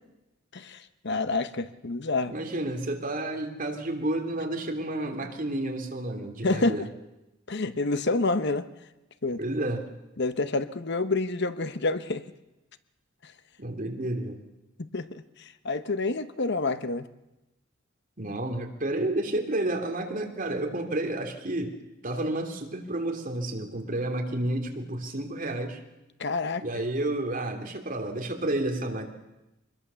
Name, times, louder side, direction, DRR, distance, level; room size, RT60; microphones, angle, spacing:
voice 1, 0.5-2.4 6.4-6.9 7.5-8.7 9.2-9.4 10.2-12.2 13.2-13.3 14.8-17.1 26.2-26.8, left 3 dB, 55° left, 11 dB, 1.0 m, -28 dB
voice 2, 2.3-6.8 9.4-9.8 13.6-14.4 18.2-21.7 22.0-25.8 26.6-29.1, right 1 dB, 40° right, 3 dB, 3.1 m, -30 dB
25.0 x 21.0 x 7.0 m, 0.98 s
head